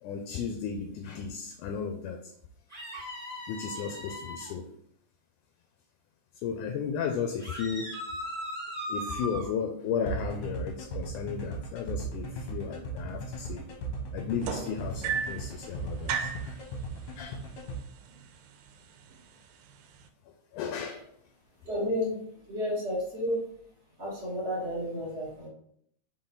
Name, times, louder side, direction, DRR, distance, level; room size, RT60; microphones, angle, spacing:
voice 1, 0.0-2.3 3.5-4.7 6.3-8.0 8.9-13.7 14.1-16.6 17.2-17.4 20.3-21.1, left 6 dB, 80° left, 5 dB, 1.8 m, -34 dB
sound 1, 2.7-4.5 7.4-9.5, equal, 5° left, 1.4 m, -38 dB
sound 2, 10.1-17.8, equal, 65° left, 1.5 m, -38 dB
sound 3, 14.4-15.5 16.1-16.5 17.5-17.6 18.0-18.4 19.1-19.2, right 7 dB, 85° right, 2.3 m, -32 dB
voice 2, 21.6-22.1 22.5-23.4 24.0-25.5, equal, 40° right, -6 dB, 0.9 m, -31 dB
5.6 x 4.2 x 4.0 m, 0.68 s
omnidirectional pair, 4.0 m